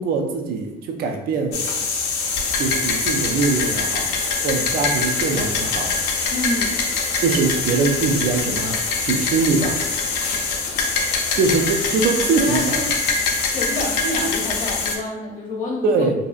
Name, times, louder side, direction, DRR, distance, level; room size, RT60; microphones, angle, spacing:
voice 1, 0.0-1.7 2.6-4.1 4.4-6.0 7.2-9.8 11.3-12.8 15.8-16.1, right 4 dB, 65° right, 4 dB, 0.4 m, -22 dB
sound 1, 1.5-15.0, left 4 dB, 80° left, 0.5 m, -23 dB
voice 2, 6.3-6.8 12.3-12.9 13.4-16.0, left 1 dB, 50° left, -1 dB, 0.8 m, -28 dB
2.7 x 2.3 x 2.4 m, 0.99 s
cardioid pair, 110°, 17 cm